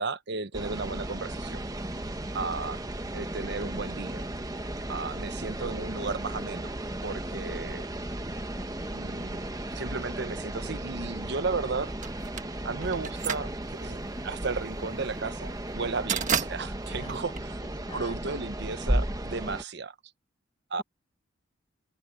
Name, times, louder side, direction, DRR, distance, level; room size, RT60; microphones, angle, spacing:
voice 1, 0.0-1.6 2.3-2.8 3.1-4.3 4.9-6.7 7.0-7.9 8.9-9.5 9.7-11.9 12.6-14.0 14.2-17.6 17.9-19.9 20.7-20.8, right 4 dB, 60° right, 0.9 m, -34 dB
sound 1, 0.5-19.6, right 1 dB, 20° right, 1.2 m, -35 dB
voice 2, 3.2-3.7 5.6-5.9 8.5-9.0 16.9-17.2 17.6-18.5, left 2 dB, 25° left, 1.1 m, -48 dB
sound 2, 12.0-18.2, right 7 dB, 40° right, 1.4 m, -34 dB
open air
head